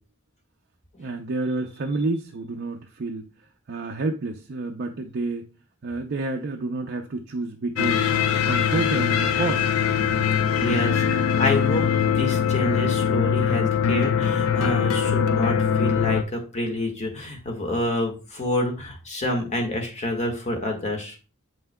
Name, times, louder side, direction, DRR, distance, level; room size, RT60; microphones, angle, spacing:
voice 1, 1.0-3.3 3.7-5.5 5.8-9.7, right 3 dB, 50° right, 3 dB, 0.5 m, -29 dB
sound 1, 7.8-16.2, left 7 dB, 70° left, 0.6 m, -22 dB
voice 2, 10.5-21.1, left 1 dB, 35° left, 2 dB, 1.5 m, -28 dB
7.6 x 5.7 x 2.2 m, 0.33 s
head